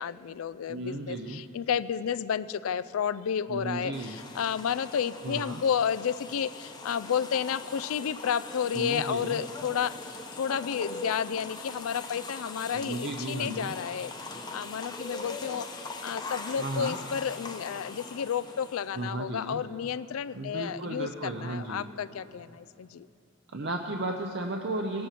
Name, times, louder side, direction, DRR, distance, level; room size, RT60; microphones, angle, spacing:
voice 1, 0.0-14.1 14.5-15.7 16.0-23.1, left 8 dB, 85° left, 16 dB, 0.4 m, -31 dB
voice 2, 0.7-1.4 3.5-4.2 5.2-5.6 8.7-9.4 12.7-13.7 16.6-17.0 18.9-19.6 20.3-21.9 23.5-25.1, right 2 dB, 55° right, 2 dB, 0.7 m, -34 dB
sound 1, 3.9-19.1, left 3 dB, 20° left, 0.8 m, -41 dB
18.5 x 8.6 x 5.9 m, 2.5 s
head